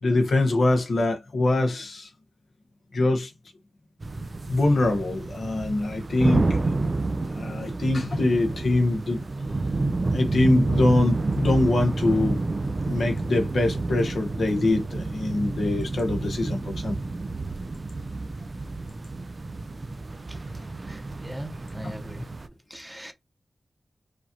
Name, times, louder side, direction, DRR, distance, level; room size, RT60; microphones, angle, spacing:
voice 1, 0.0-2.1 2.9-3.3 4.5-6.6 7.3-9.2 10.1-12.4 12.9-16.9, left 2 dB, 85° left, 1.0 m, -23 dB
sound 1, 4.0-22.5, right 3 dB, 45° right, 0.4 m, -29 dB
voice 2, 20.8-22.3 22.7-23.1, equal, 10° right, 0.8 m, -40 dB
4.8 x 2.6 x 2.8 m
wide cardioid pair, 65°, 0 cm